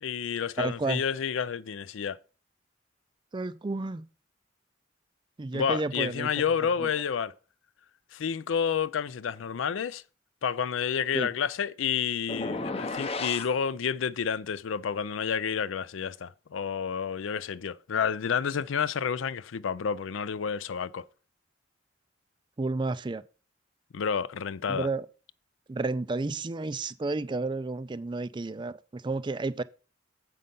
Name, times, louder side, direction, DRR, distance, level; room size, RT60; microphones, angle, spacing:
voice 1, 0.0-2.2 5.5-7.3 8.1-10.0 10.4-21.0 23.9-24.9, left 7 dB, 85° left, 0.4 m, -30 dB
voice 2, 0.6-1.0 3.3-4.1 5.4-6.3 6.8-6.9 11.1-11.3 22.6-23.2 24.7-25.1 25.7-29.6, right 3 dB, 25° right, 0.4 m, -31 dB
sound 1, 12.3-13.5, left 3 dB, 30° left, 0.7 m, -33 dB
7.6 x 5.5 x 5.3 m
head